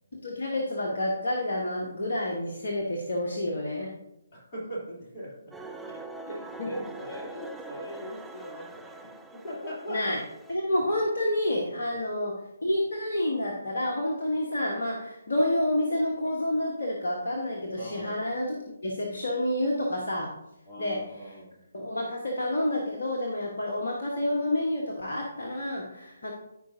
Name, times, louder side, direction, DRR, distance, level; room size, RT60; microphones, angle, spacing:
voice 1, 0.1-3.9 6.6-6.8 9.9-10.2 10.5-20.3 20.8-21.3 21.7-26.3, left 1 dB, 55° left, -1 dB, 1.3 m, -29 dB
voice 2, 4.3-10.0 11.9-12.2 17.8-18.2 20.6-21.6, equal, 25° left, -6 dB, 3.2 m, -40 dB
sound 1, 5.5-10.6, right 3 dB, 5° right, 0.4 m, -43 dB
14.0 x 5.0 x 2.7 m, 0.83 s
figure-of-eight pair, 140°, 0 cm